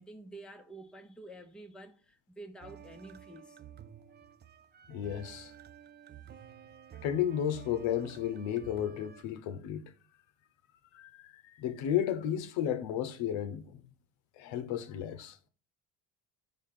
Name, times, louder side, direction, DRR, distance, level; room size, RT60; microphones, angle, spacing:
voice 1, 0.0-3.6, right 2 dB, ahead, 0.8 m, -49 dB
sound 1, 2.6-9.2, right 9 dB, 25° right, 0.4 m, -51 dB
voice 2, 4.9-5.5 7.0-9.8 10.9-13.8 14.4-15.4, left 10 dB, 65° left, 0.9 m, -33 dB
5.5 x 3.6 x 5.8 m
hypercardioid pair, 65°, 49 cm